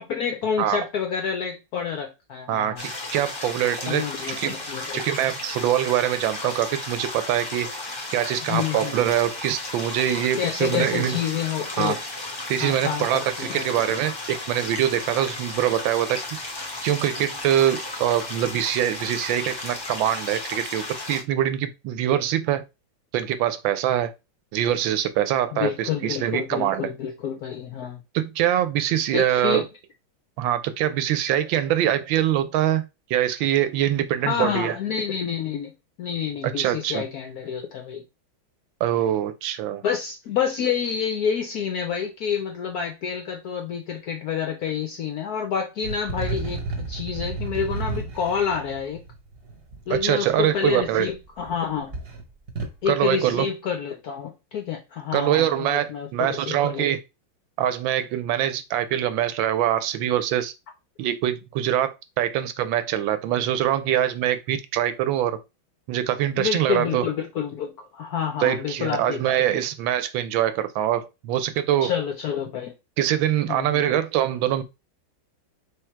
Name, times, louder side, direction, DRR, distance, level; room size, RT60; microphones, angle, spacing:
voice 1, 0.0-2.8 3.9-5.0 8.5-9.1 10.4-12.0 12.6-13.9 25.5-28.0 29.1-29.7 34.2-35.7 36.0-38.0 39.8-49.0 49.9-51.9 52.8-56.9 66.4-69.4 71.8-72.7 73.5-73.8, left 7 dB, 75° left, 0.9 m, -28 dB
voice 2, 2.5-4.6 4.9-7.7 8.1-11.2 11.8-12.0 12.5-16.2 16.8-22.6 23.1-24.1 24.5-26.9 28.1-29.6 30.4-32.8 33.1-34.7 36.4-37.0 38.8-39.8 49.9-51.1 52.9-53.5 55.1-57.0 57.6-60.5 61.0-65.4 65.9-67.0 68.4-71.9 73.0-74.6, right 11 dB, 75° right, 1.3 m, -24 dB
sound 1, 2.8-21.2, left 2 dB, 40° left, 0.3 m, -34 dB
sound 2, 45.8-50.0 50.8-51.5 51.8-52.8, right 3 dB, 40° right, 0.8 m, -32 dB
3.5 x 3.3 x 4.4 m
omnidirectional pair, 2.2 m